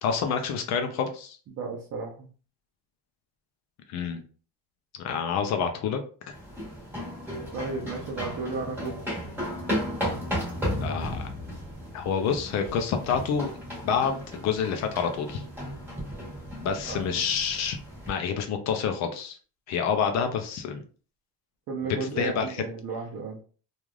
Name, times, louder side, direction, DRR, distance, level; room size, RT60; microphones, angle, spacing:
voice 1, 0.0-1.4 3.9-4.2 5.0-6.0 6.3-6.4 10.8-11.3 11.9-13.5 13.8-15.4 16.6-17.8 18.1-19.4 19.7-20.8 22.2-22.6, left 6 dB, 50° left, 6 dB, 0.4 m, -28 dB
voice 2, 1.5-2.3 7.5-9.0 16.9-17.0 21.7-23.4, right 4 dB, 45° right, -2 dB, 0.6 m, -33 dB
sound 1, 6.3-18.1, equal, 5° right, 1.3 m, -35 dB
3.1 x 2.4 x 2.3 m, 0.39 s
cardioid pair, 175°, 35 cm